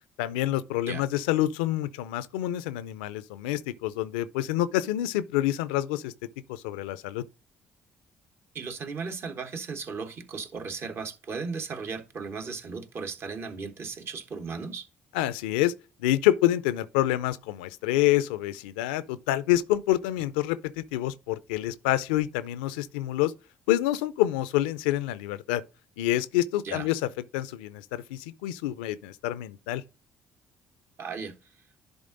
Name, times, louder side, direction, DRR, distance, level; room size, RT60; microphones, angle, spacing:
voice 1, 0.2-6.1 6.5-7.2 15.1-15.7 16.0-23.3 23.7-25.6 26.0-27.0 27.3-29.8, left 14 dB, 90° left, 0.4 m, -27 dB
voice 2, 8.5-14.9 26.6-26.9 31.0-31.4, right 5 dB, 50° right, 1.2 m, -36 dB
10.5 x 3.7 x 3.8 m
hypercardioid pair, 60°, 5 cm